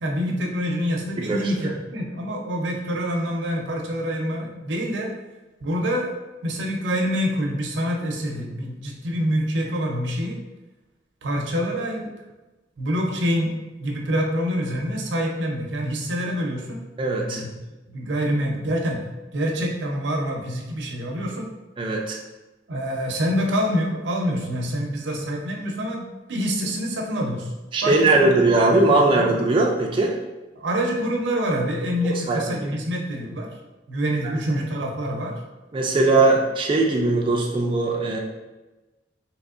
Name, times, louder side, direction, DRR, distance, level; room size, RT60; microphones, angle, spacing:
voice 1, 0.0-5.1 5.6-6.1 6.4-10.4 11.2-12.1 12.8-13.5 13.8-16.8 17.2-17.5 17.9-19.0 19.3-21.5 22.7-27.5 27.8-28.3 28.7-29.3 30.6-33.5 33.9-35.4 36.1-36.2, equal, 80° right, 1 dB, 0.6 m, -26 dB
voice 2, 1.2-1.5 17.0-17.4 21.8-22.2 27.7-30.2 32.0-32.7 34.2-34.3 35.7-38.2, right 2 dB, 30° right, 0 dB, 0.3 m, -20 dB
3.5 x 3.0 x 2.4 m, 1.1 s
head